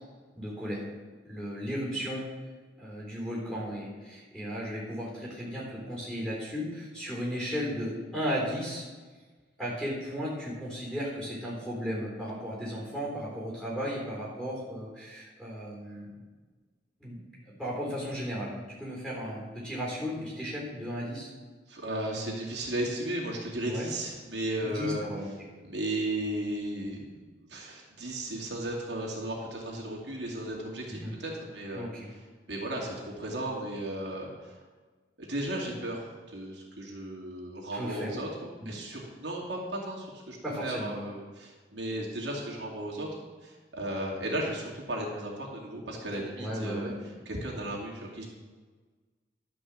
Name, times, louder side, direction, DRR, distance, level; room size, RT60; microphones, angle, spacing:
voice 1, 0.4-0.8 1.2-2.3 2.8-8.9 9.6-16.2 17.0-18.5 18.8-21.3 23.6-23.9 24.6-25.4 31.0-31.1 31.7-32.1 37.7-38.2 38.6-38.8 40.4-40.9 46.1-46.9, equal, 5° left, -5 dB, 3.7 m, -35 dB
voice 2, 21.7-25.0 25.6-31.8 32.5-34.6 35.2-43.1 43.4-46.9 47.3-48.3, right 1 dB, 75° right, -3 dB, 2.4 m, -35 dB
11.5 x 5.3 x 7.3 m, 1.4 s
head